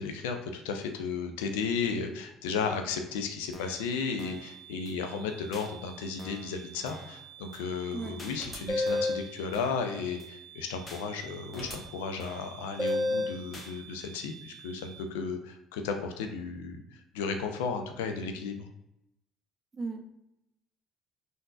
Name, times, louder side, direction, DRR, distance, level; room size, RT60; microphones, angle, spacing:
voice 1, 0.0-18.7, left 5 dB, 80° left, 6 dB, 0.3 m, -34 dB
sound 1, 3.5-3.9 4.2-4.5 4.9-5.0 5.5-5.7 6.2-6.5 6.9-7.2 7.5-7.6 8.2-8.4 8.9-9.2 9.5-9.9 10.2-10.3 10.9-11.0 11.5-11.9 12.2-12.5 12.9-13.0 13.5-13.7, left 2 dB, 35° left, 0.7 m, -46 dB
sound 2, 3.6-15.0, right 10 dB, 80° right, 0.4 m, -50 dB
sound 3, 8.4-9.3 11.6-11.7 12.8-13.4, left 2 dB, 5° left, 1.2 m, -29 dB
voice 2, 19.7-20.1, right 4 dB, 30° right, 4 dB, 0.5 m, -37 dB
3.6 x 2.5 x 2.4 m, 0.86 s
hypercardioid pair, 60°, 0 cm